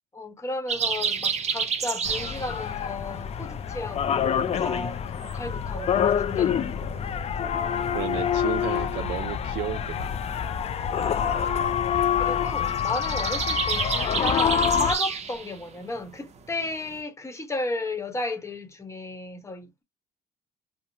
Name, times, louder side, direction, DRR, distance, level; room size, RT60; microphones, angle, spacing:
voice 1, 0.1-6.7 12.2-19.8, left 2 dB, 15° left, 0.9 m, -34 dB
sound 1, 0.7-2.9 3.2-3.7 4.0-8.2 8.6-8.7 9.0-17.0, right 6 dB, 40° right, 0.7 m, -31 dB
sound 2, 2.0-14.9, left 8 dB, 40° left, 0.4 m, -26 dB
sound 3, 6.5-11.8, equal, 65° left, 0.8 m, -44 dB
voice 2, 7.9-10.2, right 13 dB, 90° right, 0.5 m, -33 dB
3.1 x 2.0 x 2.7 m
cardioid pair, 110°, 17 cm